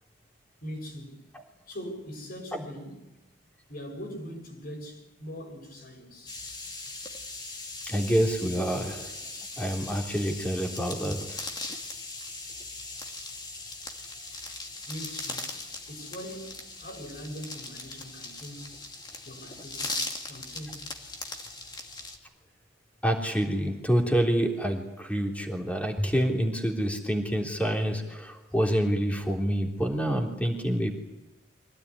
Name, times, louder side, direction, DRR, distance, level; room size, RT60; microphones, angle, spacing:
voice 1, 0.6-1.2 1.7-3.1 3.7-6.4 14.9-15.5 15.9-18.8 19.2-20.9, equal, 50° left, 6.9 m, -41 dB
sound 1, 6.3-22.2, left 3 dB, 25° left, 2.6 m, -39 dB
voice 2, 7.8-9.1 9.6-11.4 23.0-30.9, equal, 5° left, 3.5 m, -27 dB
24.5 x 17.5 x 9.9 m
head